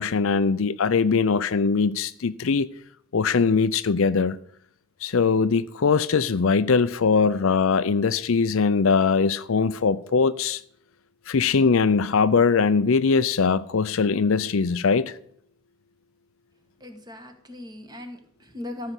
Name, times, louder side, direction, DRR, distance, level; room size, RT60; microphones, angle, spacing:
voice 1, 0.0-2.7 3.1-4.4 5.0-10.6 11.3-15.2, left 5 dB, 65° left, 0.5 m, -21 dB
voice 2, 16.8-18.9, left 1 dB, 20° right, 1.6 m, -38 dB
13.5 x 5.7 x 8.1 m
head